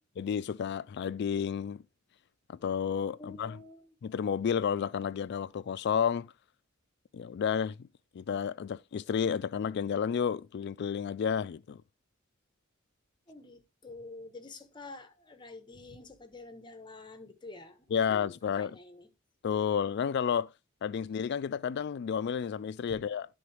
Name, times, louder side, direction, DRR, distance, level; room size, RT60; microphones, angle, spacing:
voice 1, 0.2-1.8 2.5-3.6 4.0-6.3 7.1-7.9 8.1-11.8 17.9-18.7 19.4-20.5 20.8-23.3, left 7 dB, 55° left, 0.3 m, -31 dB
voice 2, 3.2-3.9 13.3-18.0 18.6-19.1, left 2 dB, 20° left, 0.8 m, -48 dB
11.0 x 3.9 x 3.1 m
head